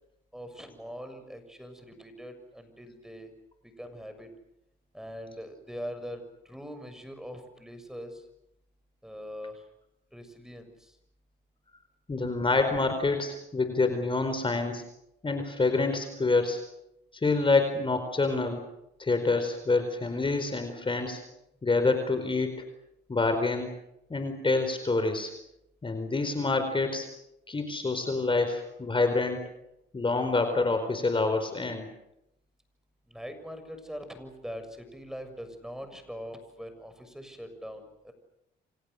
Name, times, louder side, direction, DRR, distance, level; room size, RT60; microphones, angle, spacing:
voice 1, 0.3-3.3 3.6-4.3 4.9-8.2 9.0-9.6 10.1-10.9 33.1-38.1, equal, ahead, 8 dB, 6.8 m, -42 dB
voice 2, 12.1-14.8 15.2-16.6 17.1-18.6 19.0-21.2 21.6-22.5 23.1-23.7 24.1-25.3 25.8-27.1 27.5-29.4 29.9-31.9, left 3 dB, 25° left, 7 dB, 4.6 m, -27 dB
30.0 x 26.0 x 6.7 m, 0.83 s
cardioid pair, 90°, 20 cm